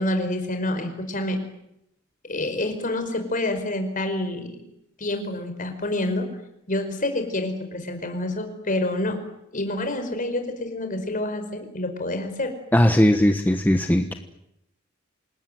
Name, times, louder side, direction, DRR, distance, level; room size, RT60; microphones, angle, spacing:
voice 1, 0.0-1.4 2.3-4.6 5.0-6.3 6.7-9.2 9.5-12.5, left 1 dB, 40° left, 6 dB, 5.1 m, -27 dB
voice 2, 12.7-14.1, equal, 10° left, 6 dB, 1.2 m, -18 dB
27.5 x 20.0 x 9.3 m, 0.84 s
head